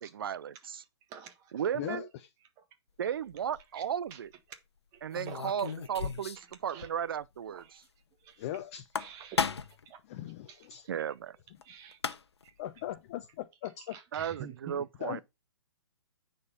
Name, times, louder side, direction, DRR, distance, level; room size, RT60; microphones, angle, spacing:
voice 1, 0.0-0.8 1.5-2.1 3.0-4.3 5.0-7.6 10.9-11.4 14.1-15.2, right 9 dB, 55° right, 0.4 m, -35 dB
voice 2, 1.1-1.7 2.6-2.7 3.0-3.1 3.7-3.8 4.1-4.2 4.9-5.0 5.3-5.7 6.4-6.9 7.5-7.8 8.2-8.6 9.0-10.0 10.5-10.8 11.6-12.0 12.4-12.5 13.8-14.8, right 9 dB, 25° right, 1.5 m, -49 dB
voice 3, 1.7-2.1 8.4-8.8 10.1-10.8 12.6-13.9 15.0-15.2, left 13 dB, 35° left, 0.7 m, -39 dB
sound 1, 3.3-3.6 5.1-6.5 6.8-6.9 7.2-7.3 8.7-9.8 11.6-11.7 11.9-12.5, left 5 dB, 70° left, 0.9 m, -34 dB
9.4 x 4.3 x 5.3 m
figure-of-eight pair, 120°, 14 cm